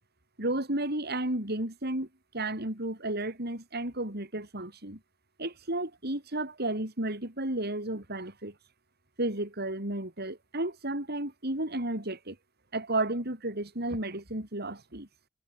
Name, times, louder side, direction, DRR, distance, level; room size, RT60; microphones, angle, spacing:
voice 1, 0.4-2.1 2.3-5.0 5.4-8.5 9.2-12.4 12.7-15.1, right 1 dB, 55° right, 6.4 m, -32 dB
head